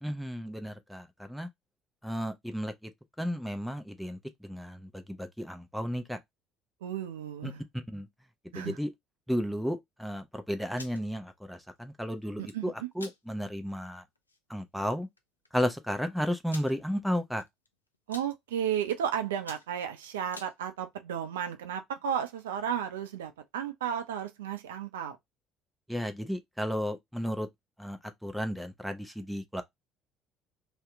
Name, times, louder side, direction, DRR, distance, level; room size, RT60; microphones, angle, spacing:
voice 1, 0.0-1.5 2.0-2.9 3.2-6.2 7.4-8.1 8.5-8.9 9.3-14.0 14.5-15.1 15.5-17.4 25.9-27.5 27.8-29.6, equal, ahead, 0.6 m, -33 dB
voice 2, 6.8-7.6 8.5-8.8 12.4-12.7 18.1-25.2, right 9 dB, 70° right, 0.4 m, -33 dB
sound 1, 10.8-11.0 12.2-12.6 13.0-13.2 13.7-13.8 14.1-14.4 15.2-15.3 15.4-15.5 16.5-16.7 17.4-17.7 17.9-18.3 18.9-19.0 19.3-20.5, left 2 dB, 85° left, 0.3 m, -46 dB
2.7 x 2.1 x 3.5 m
figure-of-eight pair, 55°, 0 cm